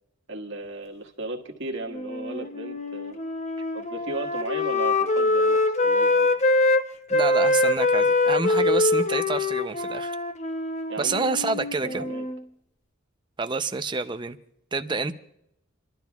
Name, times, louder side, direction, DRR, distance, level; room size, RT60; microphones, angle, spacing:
voice 1, 0.3-3.2 3.7-6.3 10.9-11.3 11.5-12.2, right 2 dB, 60° right, 2 dB, 1.6 m, -35 dB
Wind instrument woodwind instrument, 1.9-6.8 7.1-12.4, left 2 dB, 30° left, 0.7 m, -24 dB
voice 2, 7.1-10.2 11.0-12.0 13.4-14.4 14.7-15.2, right 4 dB, 20° right, 9 dB, 0.5 m, -28 dB
29.0 x 12.0 x 2.3 m, 0.80 s
head